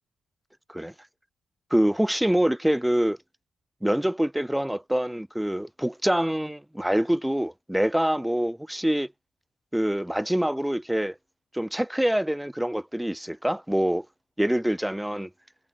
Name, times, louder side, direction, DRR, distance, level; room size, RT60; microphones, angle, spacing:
voice 1, 1.7-3.2 3.8-9.1 9.7-11.1 11.5-14.0 14.4-15.3, equal, 5° right, 1.8 m, -25 dB
supercardioid pair, 60°, 0 cm